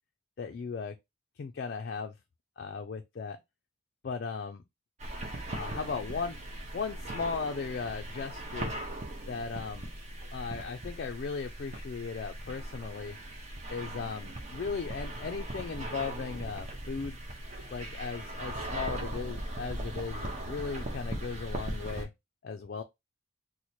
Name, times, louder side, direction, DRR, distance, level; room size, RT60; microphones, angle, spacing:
voice 1, 0.4-0.9 1.4-2.1 2.6-3.4 4.0-4.6 5.5-6.4 6.7-8.7 9.3-9.9 10.3-13.2 13.7-17.2 17.7-22.1 22.4-22.8, left 5 dB, 50° left, 0.3 m, -37 dB
sound 1, 5.0-22.0, right 1 dB, 35° right, 0.7 m, -39 dB
3.0 x 2.1 x 4.1 m
head